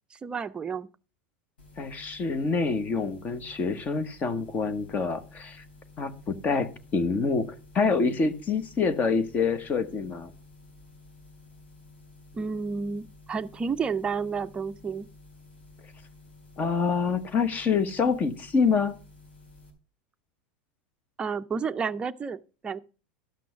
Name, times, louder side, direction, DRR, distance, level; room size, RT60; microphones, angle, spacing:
voice 1, 0.1-0.9 12.3-15.1 21.2-22.8, right 5 dB, 20° right, 0.5 m, -31 dB
sound 1, 1.6-19.7, left 3 dB, 90° left, 3.9 m, -52 dB
voice 2, 1.8-5.6 6.0-10.3 16.6-19.0, left 5 dB, 30° left, 1.2 m, -26 dB
12.0 x 6.1 x 5.8 m
hypercardioid pair, 105°, 5 cm